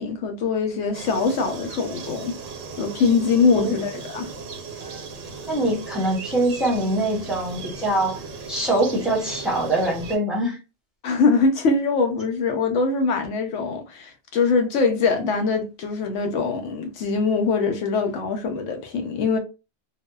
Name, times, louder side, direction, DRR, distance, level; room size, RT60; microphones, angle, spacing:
voice 1, 0.0-2.4 2.8-4.3 11.0-19.4, left 4 dB, 75° left, 1.0 m, -23 dB
sound 1, 0.9-10.2, right 4 dB, 80° right, 1.1 m, -37 dB
voice 2, 5.5-10.6, right 1 dB, ahead, 0.8 m, -24 dB
3.0 x 2.1 x 2.2 m
omnidirectional pair, 1.3 m